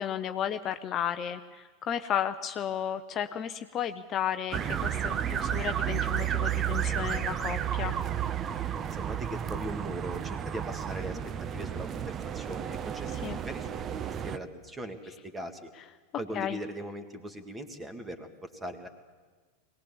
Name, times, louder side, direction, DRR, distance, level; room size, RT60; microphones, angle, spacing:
voice 1, 0.0-7.9 13.1-13.4 16.3-16.6, left 9 dB, 30° left, 9 dB, 0.7 m, -33 dB
sound 1, 4.5-14.4, right 9 dB, 30° right, 0.8 m, -32 dB
voice 2, 8.9-11.2 11.5-14.0 14.2-15.7 16.2-18.9, right 1 dB, 10° right, 7 dB, 2.0 m, -40 dB
22.0 x 18.5 x 7.2 m, 1.4 s
figure-of-eight pair, 90°, 0 cm